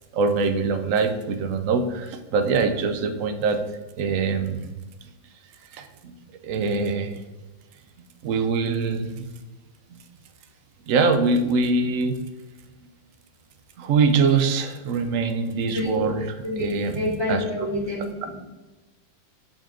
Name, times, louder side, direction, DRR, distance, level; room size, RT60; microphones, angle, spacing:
voice 1, 0.1-3.6 4.0-4.7 5.7-6.1 6.4-7.2 8.0-9.3 9.9-10.0 10.9-12.1 13.8-16.2 16.6-16.9 17.3-17.4, right 4 dB, 70° right, 7 dB, 0.8 m, -23 dB
voice 2, 15.7-16.1 16.4-18.4, left 1 dB, 15° right, -4 dB, 1.7 m, -28 dB
5.3 x 5.2 x 3.7 m, 1.1 s
omnidirectional pair, 2.0 m